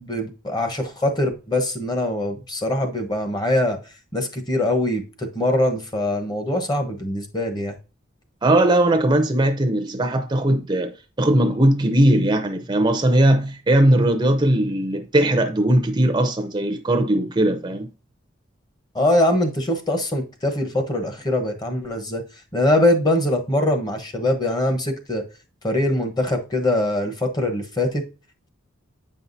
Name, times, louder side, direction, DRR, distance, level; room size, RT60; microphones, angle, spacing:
voice 1, 0.0-3.8 4.1-7.8 18.9-22.2 22.5-25.2 25.6-28.0, left 1 dB, 20° left, 1.1 m, -22 dB
voice 2, 8.4-10.9 11.2-17.9, right 1 dB, 20° right, 0.6 m, -19 dB
8.6 x 5.6 x 2.7 m
head